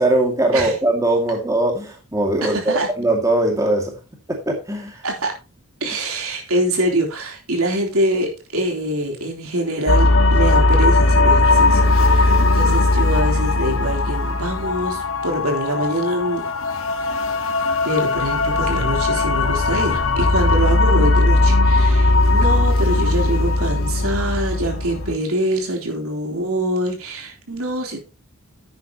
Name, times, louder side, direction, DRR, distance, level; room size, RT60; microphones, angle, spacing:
voice 1, 0.0-3.9 4.5-4.9, right 1 dB, 15° right, 2 dB, 2.3 m, -20 dB
voice 2, 2.4-2.9 5.0-5.3 5.8-16.5 17.8-28.0, right 1 dB, 80° right, 2 dB, 3.6 m, -24 dB
sound 1, 9.9-25.1, left 2 dB, 65° left, 1.6 m, -18 dB
10.0 x 9.4 x 3.0 m, 0.30 s
head